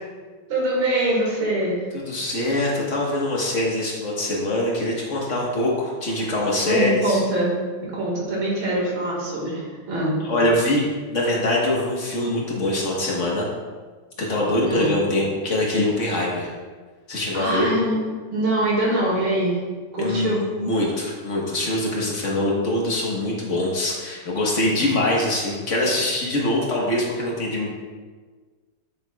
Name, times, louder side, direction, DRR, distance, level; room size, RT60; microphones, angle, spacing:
voice 1, 0.5-1.8 6.6-10.2 14.6-14.9 17.3-19.6 19.9-20.5, right 1 dB, 70° right, -3 dB, 2.6 m, -24 dB
voice 2, 1.9-7.2 10.2-10.8 11.1-13.4 14.3-16.5 17.1-17.8 20.0-27.7, left 1 dB, 45° left, -3 dB, 1.3 m, -23 dB
8.2 x 7.1 x 2.3 m, 1.5 s
omnidirectional pair, 2.3 m